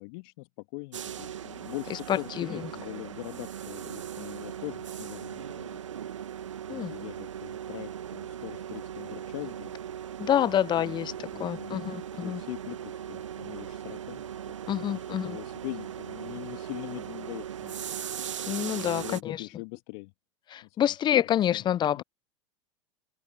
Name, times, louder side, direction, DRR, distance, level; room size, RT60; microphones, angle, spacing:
voice 1, 0.0-5.8 6.7-9.7 10.8-11.9 12.2-17.8 18.8-20.1 20.6-20.9 21.5-21.7 21.9-22.0, left 30 dB, 55° left, 2.1 m, -42 dB
sound 1, 0.9-19.2, right 9 dB, 80° right, 2.3 m, -39 dB
voice 2, 2.1-2.5 6.7-6.9 10.2-12.4 14.7-15.4 18.5-19.5 20.5-22.0, left 10 dB, 30° left, 0.7 m, -27 dB
figure-of-eight pair, 85°, 16 cm